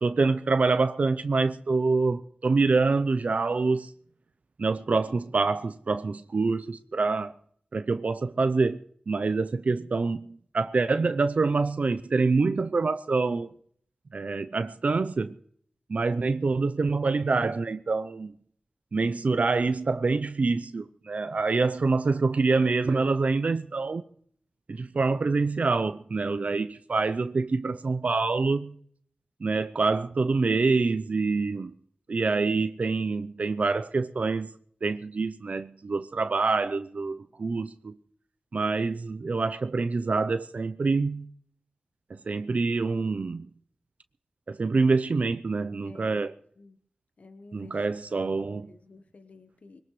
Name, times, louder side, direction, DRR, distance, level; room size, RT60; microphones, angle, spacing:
voice 1, 0.0-3.9 4.6-7.3 7.7-13.5 14.1-15.4 15.9-18.3 18.9-24.0 24.7-28.7 29.4-31.7 32.1-34.5 34.8-38.0 38.5-41.3 42.1-43.5 44.5-46.3 47.5-48.7, right 4 dB, 60° right, 0.6 m, -26 dB
voice 2, 45.8-46.2 46.6-46.8 47.2-47.7 48.1-48.3 48.7-49.8, left 3 dB, 60° left, 1.1 m, -51 dB
21.0 x 18.5 x 3.2 m
cardioid pair, 40°, 3 cm